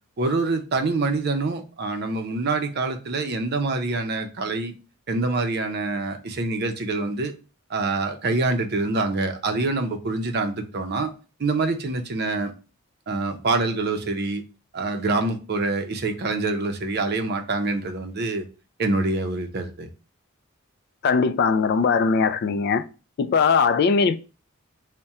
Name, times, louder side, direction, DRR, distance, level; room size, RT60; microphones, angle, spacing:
voice 1, 0.2-4.7 5.1-7.3 7.7-11.1 11.4-12.5 13.1-14.4 14.7-18.4 18.8-19.9, right 3 dB, 50° right, 0.6 m, -25 dB
voice 2, 21.0-22.8 23.2-24.2, left 5 dB, 50° left, 0.3 m, -20 dB
4.1 x 2.1 x 3.5 m
head